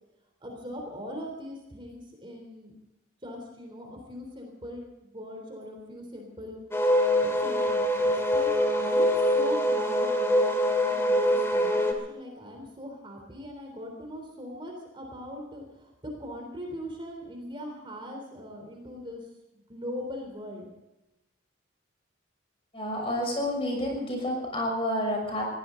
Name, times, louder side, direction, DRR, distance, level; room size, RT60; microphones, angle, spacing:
voice 1, 0.4-2.8 3.2-8.5 8.7-19.3 19.5-20.7, equal, 25° right, 2 dB, 3.6 m, -41 dB
sound 1, 6.7-11.9, left 1 dB, 15° left, 2.3 m, -24 dB
voice 2, 22.7-25.4, left 1 dB, 30° left, 1 dB, 6.4 m, -29 dB
22.0 x 17.0 x 3.9 m, 0.98 s
head